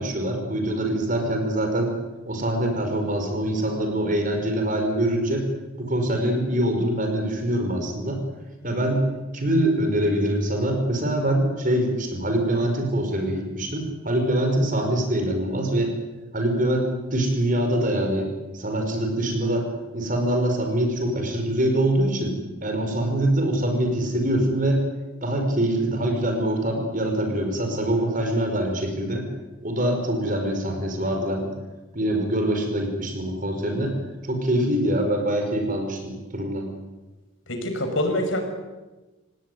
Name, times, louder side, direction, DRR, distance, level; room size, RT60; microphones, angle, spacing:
voice 1, 0.0-1.9 2.3-5.4 5.8-8.2 8.6-9.0 9.3-15.9 16.3-19.7 19.9-22.3 22.6-24.8 25.2-29.2 29.6-31.5 31.9-33.9 34.2-36.7, right 1 dB, 40° right, 4 dB, 5.3 m, -24 dB
voice 2, 37.5-38.4, left 1 dB, 70° left, 4 dB, 6.1 m, -25 dB
27.0 x 18.0 x 9.7 m, 1.2 s
head